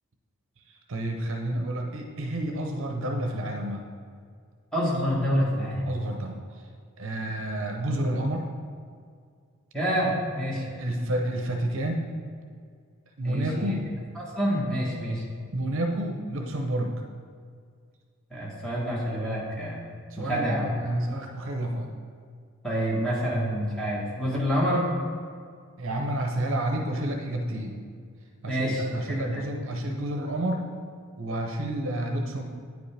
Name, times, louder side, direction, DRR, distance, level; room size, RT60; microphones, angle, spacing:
voice 1, 0.9-3.8 5.8-6.4 7.0-8.5 10.6-12.1 13.2-13.9 15.5-17.0 20.1-22.0 25.8-27.8 28.4-30.7 31.2-32.4, right 1 dB, 65° right, 2 dB, 0.7 m, -30 dB
voice 2, 4.7-5.9 9.7-10.6 13.2-13.7 14.4-15.2 18.3-19.8 20.2-20.6 22.6-24.9 28.4-29.4, equal, 5° left, -6 dB, 1.3 m, -27 dB
9.3 x 5.1 x 3.3 m, 2.1 s
head